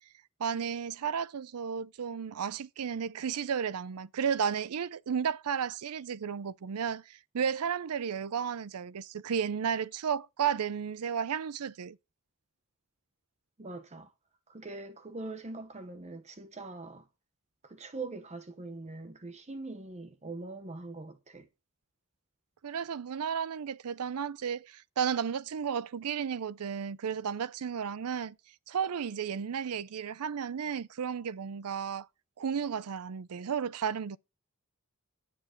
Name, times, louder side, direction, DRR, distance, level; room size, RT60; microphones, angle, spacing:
voice 1, 0.4-12.0 22.6-28.4 28.7-32.1 32.4-34.2, right 7 dB, 80° right, 0.5 m, -33 dB
voice 2, 13.6-14.1 14.5-17.1 17.6-21.5, right 3 dB, 30° right, 0.9 m, -42 dB
11.0 x 7.8 x 5.1 m
head